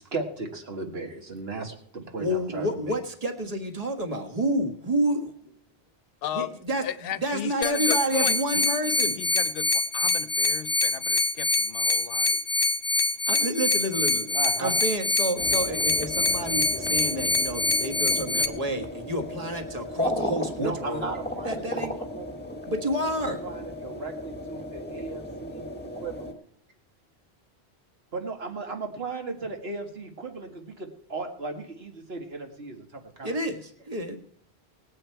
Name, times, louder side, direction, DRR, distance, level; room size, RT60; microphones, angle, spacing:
voice 1, 0.0-3.0 14.3-14.7 20.6-21.9 22.2-22.3 23.4-26.4 28.1-33.3, right 3 dB, 70° right, 4 dB, 1.9 m, -36 dB
voice 2, 2.2-5.5 6.3-9.2 13.3-21.1 21.4-21.9 22.7-23.4 33.2-34.2, right 1 dB, 35° right, 4 dB, 1.6 m, -29 dB
voice 3, 6.8-8.7 9.2-12.4, left 10 dB, 65° left, 15 dB, 0.8 m, -35 dB
sound 1, 7.6-18.5, left 3 dB, 25° left, 0.7 m, -25 dB
sound 2, 15.3-26.3, left 1 dB, 10° left, 1.4 m, -35 dB
19.5 x 7.9 x 4.5 m, 0.67 s
omnidirectional pair, 1.1 m